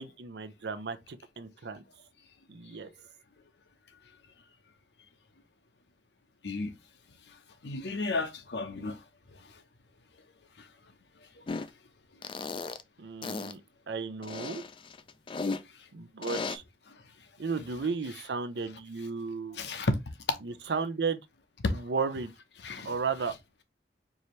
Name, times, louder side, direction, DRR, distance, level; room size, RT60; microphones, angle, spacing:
voice 1, 0.0-1.8 2.5-2.9 13.0-13.6 13.9-14.6 15.9-16.6 17.4-19.6 20.4-21.2 21.7-22.3 22.8-23.3, right 5 dB, 75° right, 0.6 m, -34 dB
voice 2, 7.6-9.0 19.5-20.0 20.3-20.4 21.6-21.8 22.6-22.9, left 3 dB, 75° left, 0.8 m, -31 dB
sound 1, 11.5-11.7 12.2-12.8 13.2-13.5 14.2-15.6 16.2-16.6, left 4 dB, 30° left, 0.3 m, -35 dB
4.7 x 2.7 x 3.0 m
head